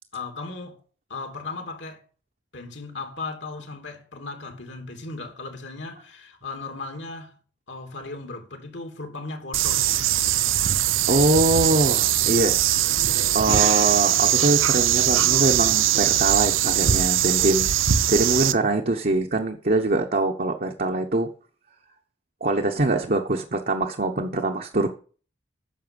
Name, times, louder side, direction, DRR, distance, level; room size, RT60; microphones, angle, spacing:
voice 1, 0.1-0.8 1.1-2.0 2.5-7.3 7.7-10.1, left 3 dB, 65° left, 2.9 m, -36 dB
sound 1, 9.5-18.5, right 11 dB, 85° right, 0.7 m, -21 dB
voice 2, 10.8-12.6 12.9-17.7 18.1-21.3 22.4-24.9, right 2 dB, 45° right, 1.1 m, -23 dB
10.5 x 7.1 x 7.1 m
head